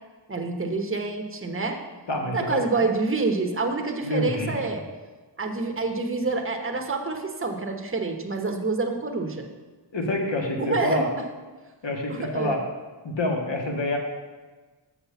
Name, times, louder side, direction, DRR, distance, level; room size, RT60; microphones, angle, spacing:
voice 1, 0.3-1.8 2.3-4.8 5.4-9.5 10.6-11.1 12.1-12.6, right 3 dB, 30° right, 3 dB, 1.0 m, -27 dB
voice 2, 2.1-2.6 4.0-4.6 9.9-11.1 11.8-12.6 13.0-14.0, left 1 dB, 70° left, 1 dB, 1.6 m, -27 dB
6.7 x 5.8 x 6.9 m, 1.3 s
wide cardioid pair, 75°, 46 cm